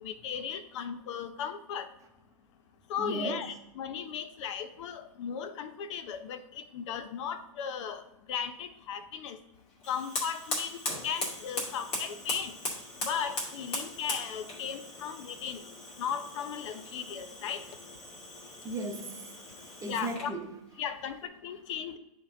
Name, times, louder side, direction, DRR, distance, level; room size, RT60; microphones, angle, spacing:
voice 1, 0.0-1.9 2.9-8.0 8.3-9.4 9.9-12.5 13.0-15.6 16.0-17.6 19.9-20.3 20.8-22.0, left 7 dB, 60° left, 10 dB, 0.7 m, -36 dB
voice 2, 3.0-3.5 12.3-12.5 18.6-19.3 19.6-21.2, right 2 dB, 20° right, 4 dB, 1.0 m, -38 dB
Fire, 9.8-20.4, left 1 dB, 35° left, 2.3 m, -39 dB
10.0 x 3.8 x 3.8 m, 0.88 s
hypercardioid pair, 125°, 17 cm